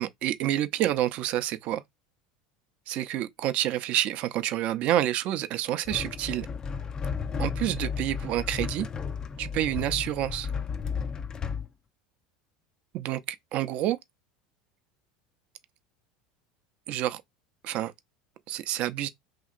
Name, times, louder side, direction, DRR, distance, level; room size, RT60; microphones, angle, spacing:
voice 1, 0.0-1.8 2.9-6.5 7.4-8.9 9.4-10.5 12.9-14.0 16.9-17.2 17.6-17.9 18.5-19.1, right 13 dB, 55° right, 0.5 m, -28 dB
sound 1, 5.9-11.7, left 6 dB, 30° left, 0.3 m, -33 dB
2.8 x 2.8 x 2.4 m
hypercardioid pair, 95°, 3 cm